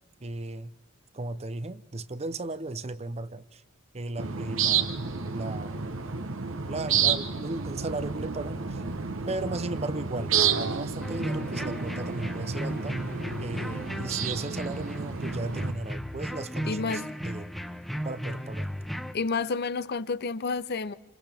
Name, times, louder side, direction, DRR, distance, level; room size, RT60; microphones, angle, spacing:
voice 1, 0.2-0.7 1.1-3.6 3.9-5.0 5.3-5.9 6.7-8.8 9.3-13.0 13.4-17.5 18.0-18.7, right 2 dB, 30° right, 0.7 m, -36 dB
sound 1, 4.2-15.7, right 6 dB, 75° right, 1.0 m, -30 dB
sound 2, 11.0-19.1, equal, ahead, 1.0 m, -36 dB
voice 2, 16.7-17.1 19.1-20.9, left 4 dB, 50° left, 0.6 m, -30 dB
29.0 x 26.0 x 3.5 m
head